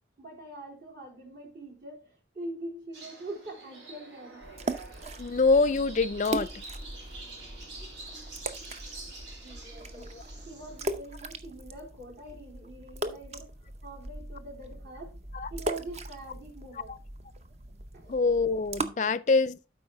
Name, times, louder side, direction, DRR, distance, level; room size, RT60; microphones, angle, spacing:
voice 1, 0.2-4.5 9.4-10.2 10.5-13.5 13.8-15.2 15.5-17.0 17.9-18.2 18.9-19.2, right 2 dB, 55° right, 3.5 m, -43 dB
sound 1, 2.9-10.9, right 2 dB, 90° right, 2.9 m, -47 dB
sound 2, 4.4-18.9, right 2 dB, 35° right, 0.6 m, -39 dB
voice 2, 5.2-6.5 15.3-15.5 18.1-19.7, left 3 dB, 40° left, 0.4 m, -25 dB
12.0 x 4.6 x 3.4 m
head